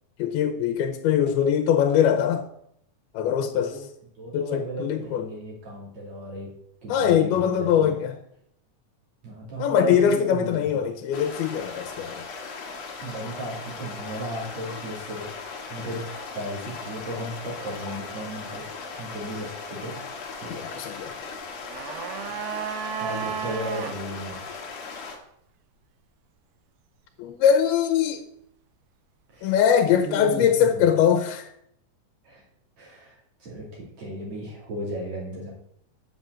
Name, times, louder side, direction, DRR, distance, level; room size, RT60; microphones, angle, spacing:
voice 1, 0.2-2.5 3.1-3.9 4.3-5.3 6.9-8.2 9.6-12.3 20.5-21.2 27.2-28.2 29.4-31.5, left 8 dB, 90° left, 2.6 m, -22 dB
voice 2, 1.1-1.5 3.4-3.8 4.2-6.5 6.8-7.9 9.2-10.7 13.0-16.0 16.3-18.7 18.9-20.0 20.3-20.6 23.0-24.6 29.3-29.5 29.9-30.9 32.2-32.4 32.8-35.5, right 1 dB, 45° right, 3.9 m, -35 dB
sound 1, 11.1-25.2, left 4 dB, 55° left, 2.1 m, -38 dB
sound 2, 21.4-24.0 24.3-24.4, right 8 dB, 85° right, 2.6 m, -33 dB
8.0 x 5.5 x 7.5 m
omnidirectional pair, 4.4 m